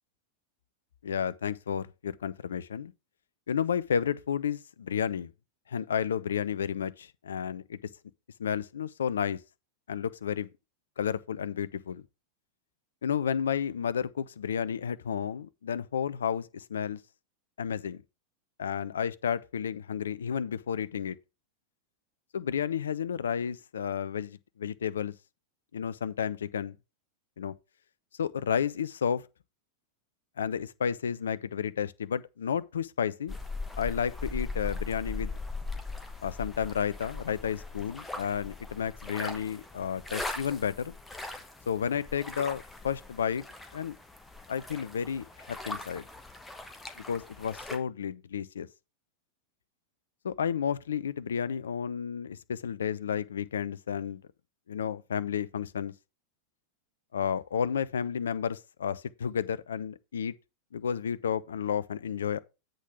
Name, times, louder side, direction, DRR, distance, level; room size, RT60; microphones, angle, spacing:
voice 1, 1.0-2.9 3.5-5.3 5.7-7.8 8.4-9.4 9.9-10.5 11.0-12.0 13.0-17.0 17.6-18.0 18.6-21.2 22.3-25.1 25.7-26.7 27.4-27.5 28.2-29.2 30.4-33.4 33.8-35.3 36.2-41.0 41.7-43.4 43.7-43.9 44.5-46.0 47.1-48.7 50.2-54.2 54.7-55.9 57.1-60.3 60.7-62.4, left 8 dB, 65° left, 0.4 m, -32 dB
sound 1, 33.3-47.8, left 3 dB, 10° left, 1.1 m, -40 dB
8.1 x 3.8 x 5.9 m
figure-of-eight pair, 90°, 0 cm